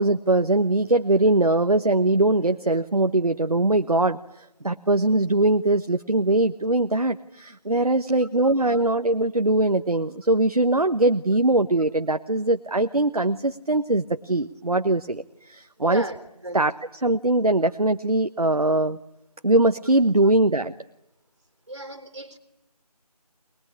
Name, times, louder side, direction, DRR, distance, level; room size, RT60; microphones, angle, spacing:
voice 1, 0.0-16.0 16.5-16.7 17.0-19.0 19.4-20.7, right 2 dB, 65° right, 8 dB, 1.2 m, -21 dB
voice 2, 8.4-8.8 15.8-16.2 16.4-16.7 20.2-20.3 21.7-22.4, right 1 dB, 45° right, 9 dB, 3.7 m, -36 dB
24.0 x 21.5 x 9.9 m, 0.85 s
figure-of-eight pair, 170°, 20 cm